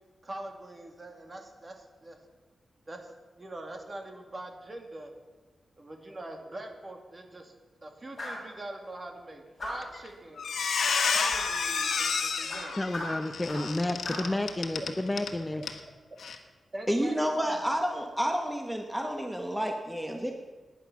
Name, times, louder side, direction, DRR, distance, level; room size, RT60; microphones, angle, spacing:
voice 1, 0.2-2.2 2.9-5.1 5.8-7.5 7.8-10.5 11.1-12.8 15.6-15.7 16.7-17.7, right 1 dB, 30° right, 3 dB, 2.1 m, -43 dB
sound 1, 8.2-8.5 9.6-10.0 11.3-11.5 12.5-13.8 14.0-14.3, left 1 dB, 35° left, 6.3 m, -38 dB
Squeak, 9.8-10.1 10.4-15.3 15.6-15.8 16.2-16.4, left 5 dB, 80° left, 1.5 m, -30 dB
voice 2, 12.8-15.6, left 1 dB, 15° left, 8 dB, 0.6 m, -31 dB
voice 3, 16.9-20.3, equal, 5° right, 3 dB, 1.1 m, -30 dB
18.5 x 10.5 x 6.0 m, 1.3 s
wide cardioid pair, 135°, 0 cm